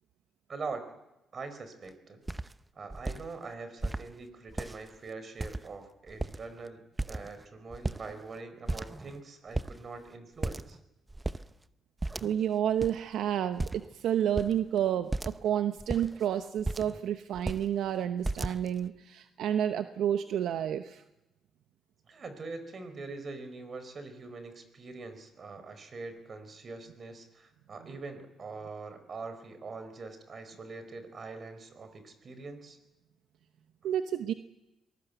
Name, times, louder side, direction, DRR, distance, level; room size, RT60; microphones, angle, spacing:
voice 1, 0.5-0.8 1.3-2.2 2.7-6.8 7.1-10.8 22.1-32.8, right 3 dB, 45° right, 10 dB, 4.6 m, -43 dB
sound 1, 1.9-2.0 2.3-2.5 2.9-3.2 3.8-4.1 4.5-5.0 5.4-5.8 6.1-6.6 7.0-7.4 7.7-8.4 8.7-9.2 9.5-9.7 10.4-10.8 11.1-11.4 12.0-12.5 12.8-12.9 13.6-13.9 14.4-14.6 15.1-15.4 15.8-17.0 17.3-17.7 18.2-18.9, right 2 dB, 15° right, 0.8 m, -35 dB
voice 2, 12.2-21.0 33.8-34.3, right 10 dB, 80° right, 9 dB, 0.9 m, -30 dB
23.5 x 20.0 x 8.2 m, 0.96 s
cardioid pair, 90°, 0 cm